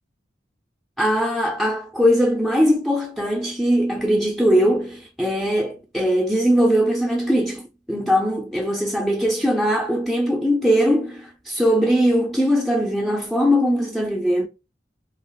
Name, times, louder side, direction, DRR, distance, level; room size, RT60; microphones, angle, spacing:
voice 1, 1.0-14.5, equal, ahead, 0.4 m, -20 dB
5.1 x 2.0 x 2.3 m
head